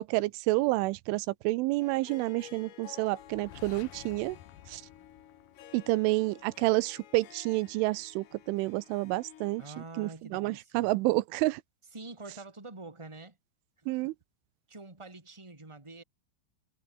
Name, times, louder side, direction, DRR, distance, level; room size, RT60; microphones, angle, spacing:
voice 1, 0.0-4.4 4.7-4.8 5.7-9.6 10.0-11.6 13.9-14.1, right 20 dB, 85° right, 3.0 m, -29 dB
Harp, 1.8-9.8, left 11 dB, 85° left, 5.1 m, -53 dB
sound 1, 3.2-6.1, left 12 dB, 65° left, 2.4 m, -51 dB
voice 2, 9.6-10.9 11.9-13.4 13.8-14.1 14.7-16.0, right 2 dB, 10° right, 1.4 m, -46 dB
omnidirectional pair, 5.8 m